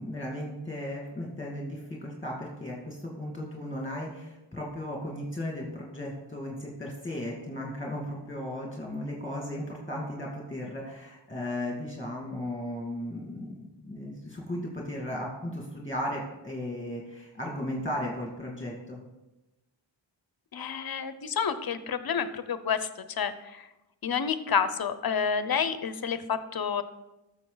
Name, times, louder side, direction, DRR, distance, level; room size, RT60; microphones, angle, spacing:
voice 1, 0.0-19.0, left 1 dB, 10° left, -3 dB, 2.2 m, -36 dB
voice 2, 20.5-22.9 23.2-23.7 24.0-26.8, left 7 dB, 50° left, 12 dB, 0.8 m, -29 dB
13.5 x 6.6 x 4.0 m, 0.99 s
wide cardioid pair, 100°, 47 cm